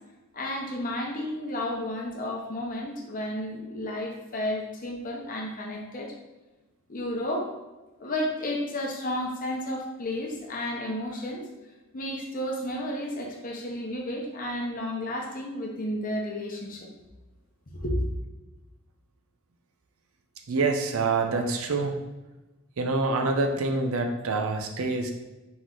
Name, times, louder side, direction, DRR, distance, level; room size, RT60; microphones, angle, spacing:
voice 1, 0.3-6.1 6.9-7.5 8.0-11.4 11.9-16.9 17.8-18.0, left 1 dB, 40° left, 0 dB, 0.8 m, -32 dB
voice 2, 20.5-22.0 22.8-25.1, right 3 dB, 70° right, 4 dB, 0.6 m, -26 dB
4.0 x 3.1 x 3.8 m, 1.1 s
head